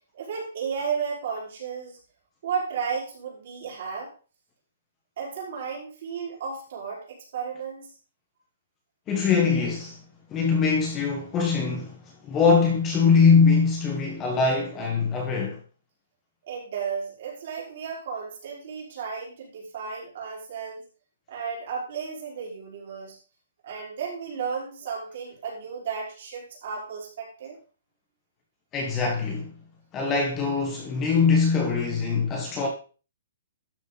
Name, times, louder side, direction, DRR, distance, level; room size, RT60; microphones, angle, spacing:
voice 1, 0.1-2.0 2.4-4.1 5.2-7.9 16.5-20.8 21.3-23.2 23.6-27.6, right 6 dB, 45° right, 4.8 m, -33 dB
voice 2, 9.1-10.0 10.3-12.0 12.2-15.6 28.7-29.5 29.9-32.7, left 5 dB, 15° left, 1.2 m, -22 dB
12.5 x 6.5 x 4.0 m
hypercardioid pair, 180°, 0 cm